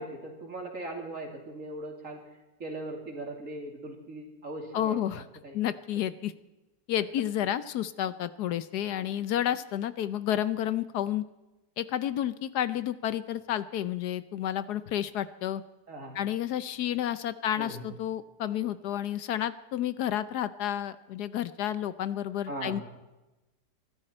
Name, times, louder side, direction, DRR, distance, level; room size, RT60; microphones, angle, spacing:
voice 1, 0.0-2.2 2.6-5.0 5.4-5.6 15.9-16.2 17.6-17.8 22.5-22.8, right 1 dB, 50° right, 2 dB, 3.1 m, -39 dB
voice 2, 4.7-5.3 5.5-6.3 6.9-11.2 11.8-15.6 16.1-22.8, left 11 dB, 75° left, 14 dB, 1.2 m, -30 dB
24.5 x 13.0 x 4.4 m, 1.0 s
omnidirectional pair, 1.8 m